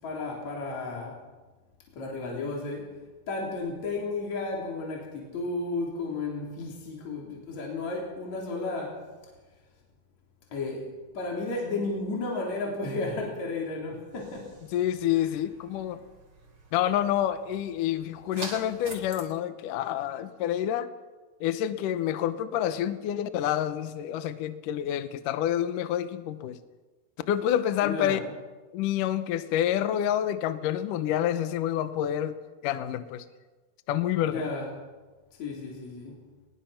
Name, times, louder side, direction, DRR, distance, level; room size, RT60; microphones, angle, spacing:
voice 1, 0.0-1.2 1.9-2.9 3.3-9.0 10.5-14.5 27.8-28.2 34.3-34.7 35.4-36.2, left 3 dB, 45° left, -2 dB, 4.7 m, -33 dB
sound 1, 14.1-19.2, right 3 dB, 45° right, 4.7 m, -46 dB
voice 2, 14.7-16.0 16.7-20.9 21.4-26.6 27.3-28.2 28.7-32.3 32.6-33.3 33.9-34.4, left 11 dB, 70° left, 11 dB, 2.2 m, -28 dB
23.0 x 21.0 x 5.9 m, 1.3 s
omnidirectional pair, 4.6 m